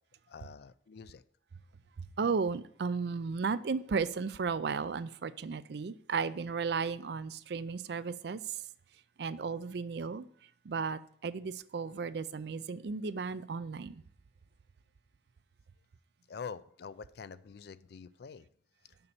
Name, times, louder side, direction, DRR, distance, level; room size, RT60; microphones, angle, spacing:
voice 1, 0.3-1.2 16.3-18.5, left 6 dB, 60° left, 0.4 m, -46 dB
voice 2, 2.0-8.6 9.2-10.3 10.6-14.0, right 5 dB, 60° right, 0.4 m, -34 dB
6.8 x 5.3 x 7.1 m
head